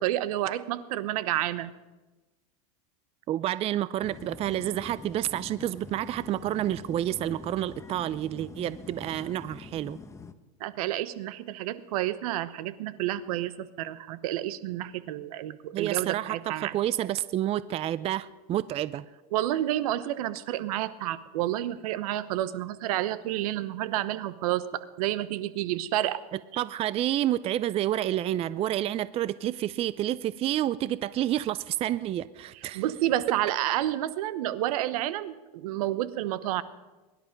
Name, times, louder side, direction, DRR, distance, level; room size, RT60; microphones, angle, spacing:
voice 1, 0.0-1.7 10.6-16.8 19.3-26.2 32.7-36.6, right 13 dB, 80° right, 14 dB, 0.9 m, -30 dB
voice 2, 3.3-10.0 15.7-19.0 26.6-32.8, right 12 dB, 30° right, 17 dB, 0.4 m, -29 dB
sound 1, 4.0-10.3, left 4 dB, 15° left, 0.9 m, -45 dB
22.5 x 11.5 x 5.2 m, 1.2 s
supercardioid pair, 120°, 19 cm